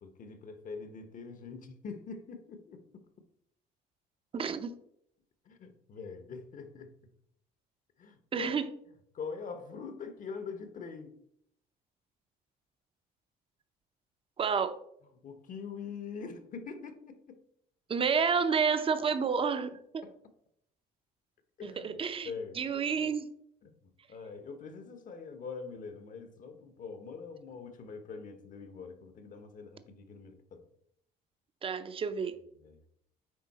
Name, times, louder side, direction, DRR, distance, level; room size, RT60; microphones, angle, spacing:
voice 1, 0.0-3.0 5.5-6.9 8.0-8.5 9.1-11.2 15.2-17.4 20.0-20.1 21.6-22.7 23.0-23.1 23.6-30.7 32.6-32.8, left 5 dB, 50° left, 1.1 m, -44 dB
voice 2, 4.3-4.8 8.3-8.7 14.4-14.8 17.9-20.0 21.6-22.3 22.6-23.3 31.6-32.4, right 6 dB, 30° right, 0.7 m, -30 dB
9.5 x 3.7 x 4.2 m
cardioid pair, 110°, 17 cm